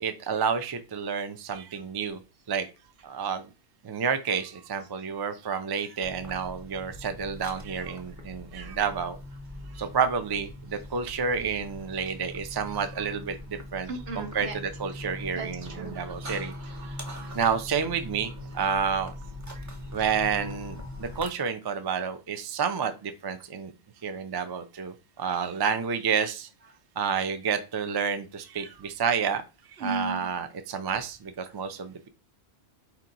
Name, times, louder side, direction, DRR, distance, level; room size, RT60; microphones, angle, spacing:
voice 1, 0.0-2.2 2.5-2.7 3.0-3.5 3.8-9.2 9.7-16.5 17.3-19.1 19.9-23.7 24.0-26.5 27.0-29.4 29.8-32.1, right 6 dB, 40° right, 9 dB, 0.3 m, -30 dB
sound 1, 6.0-21.3, left 1 dB, 20° right, 0.7 m, -41 dB
voice 2, 13.9-14.5 15.3-17.4 19.5-19.7 29.8-30.3, right 3 dB, 75° right, 5 dB, 1.3 m, -38 dB
4.6 x 2.9 x 3.8 m, 0.30 s
omnidirectional pair, 1.1 m